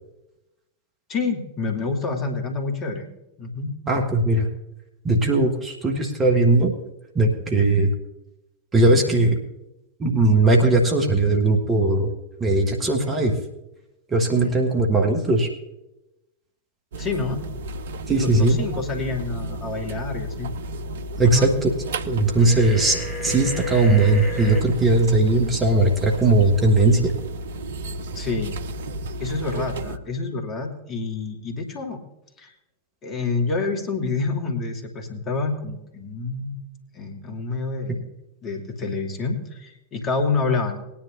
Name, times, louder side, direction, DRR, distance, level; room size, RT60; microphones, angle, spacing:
voice 1, 1.1-3.1 3.4-3.7 17.0-17.4 18.1-20.5 21.2-21.5 28.1-28.6 29.2-32.0 32.4-32.5 33.0-36.6 36.9-38.0 38.4-40.8, left 4 dB, 30° left, 2 dB, 2.3 m, -27 dB
voice 2, 3.9-4.5 5.0-6.7 7.2-7.9 8.7-9.4 10.0-12.1 12.4-13.4 14.1-15.5 18.1-18.6 21.2-21.7 22.1-23.0 23.2-27.1, right 2 dB, 20° right, 1 dB, 1.7 m, -19 dB
sound 1, 16.9-30.0, right 1 dB, 60° right, 0.6 m, -33 dB
sound 2, 22.4-24.6, left 2 dB, ahead, 1.7 m, -32 dB
20.0 x 10.5 x 2.6 m, 0.91 s
figure-of-eight pair, 90°, 0 cm